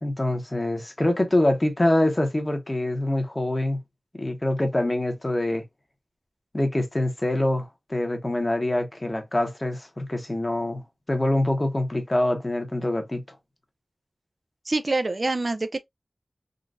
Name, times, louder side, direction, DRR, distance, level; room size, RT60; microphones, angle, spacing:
voice 1, 0.0-3.8 4.2-5.6 6.5-10.8 11.1-13.2, left 1 dB, 30° left, 1.0 m, -25 dB
voice 2, 14.7-15.8, right 2 dB, 55° right, 0.4 m, -25 dB
3.8 x 2.3 x 2.5 m
wide cardioid pair, 55°, 0 cm